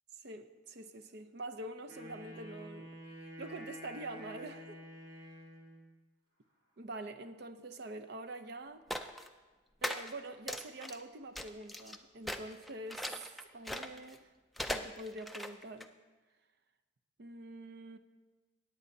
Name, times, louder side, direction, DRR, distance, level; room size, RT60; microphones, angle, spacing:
voice 1, 0.1-2.9 3.2-4.8 6.8-8.8 9.8-13.2 13.5-14.3 14.7-15.9 17.2-18.0, right 2 dB, 55° right, 9 dB, 0.6 m, -45 dB
Wind instrument woodwind instrument, 1.8-5.8, equal, 70° right, 3.0 m, -49 dB
sound 1, 8.9-9.3 9.8-10.1 10.5-11.0 11.3-12.0 12.2-14.2 14.6-15.9, left 1 dB, ahead, 0.3 m, -39 dB
18.0 x 8.7 x 2.7 m, 1.3 s
head